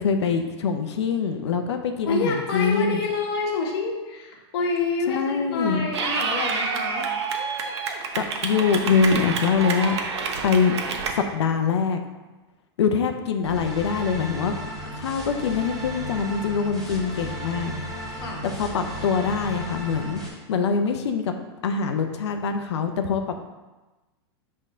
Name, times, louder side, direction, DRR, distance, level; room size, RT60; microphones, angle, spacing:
voice 1, 0.0-3.0 5.1-5.9 8.1-10.0 10.4-10.7 11.1-12.0 12.8-14.5 14.9-17.7 18.4-20.2 20.5-21.3 21.6-23.2, left 6 dB, 90° left, 5 dB, 0.7 m, -24 dB
voice 2, 2.0-7.1 18.1-18.5, left 3 dB, 65° left, 0 dB, 1.7 m, -27 dB
Clapping / Cheering, 5.9-11.1, right 5 dB, 85° right, 1.0 m, -28 dB
sound 1, 13.4-20.3, right 1 dB, ahead, 2.2 m, -35 dB
6.3 x 3.7 x 5.5 m, 1.1 s
supercardioid pair, 135°, 14 cm